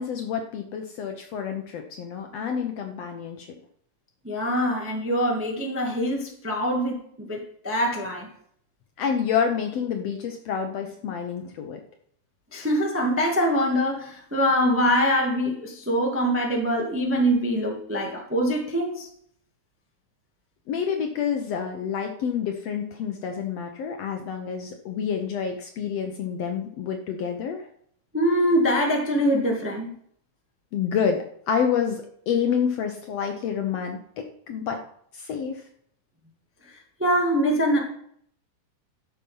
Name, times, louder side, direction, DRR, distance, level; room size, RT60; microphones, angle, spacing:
voice 1, 0.0-3.5 9.0-11.8 20.7-27.6 30.7-34.8 35.1-35.6, left 7 dB, 65° left, 4 dB, 1.7 m, -28 dB
voice 2, 4.2-8.3 12.5-19.1 28.1-29.9 37.0-37.8, equal, 5° right, 0 dB, 1.0 m, -24 dB
12.5 x 7.0 x 5.6 m, 0.66 s
omnidirectional pair, 3.7 m